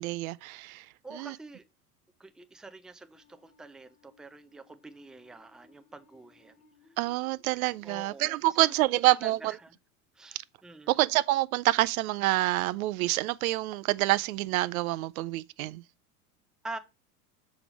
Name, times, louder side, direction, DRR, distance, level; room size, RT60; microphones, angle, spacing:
voice 1, 0.0-0.9 1.1-1.3 7.0-9.5 10.9-15.8, right 18 dB, 65° right, 0.5 m, -27 dB
voice 2, 1.0-1.6 2.2-6.6 7.8-8.7 9.1-9.7 10.1-11.0 16.6-16.8, right 2 dB, ahead, 0.5 m, -46 dB
sound 1, 3.1-10.0, left 4 dB, 75° left, 1.8 m, -65 dB
6.0 x 4.9 x 5.1 m
hypercardioid pair, 90°, 45 cm